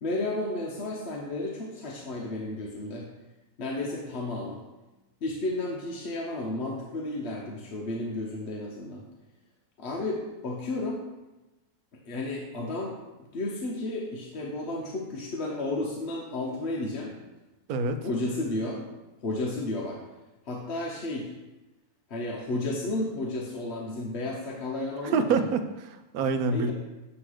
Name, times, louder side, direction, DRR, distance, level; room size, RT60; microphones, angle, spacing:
voice 1, 0.0-3.1 3.6-4.6 5.2-9.0 9.8-11.0 12.1-13.0 13.3-17.1 18.0-18.9 19.2-20.0 20.5-21.3 22.1-25.5 26.5-26.7, left 2 dB, 50° left, -1 dB, 0.9 m, -32 dB
voice 2, 25.1-26.7, right 4 dB, 75° right, 7 dB, 1.0 m, -26 dB
7.6 x 3.1 x 6.2 m, 1.1 s
omnidirectional pair, 1.6 m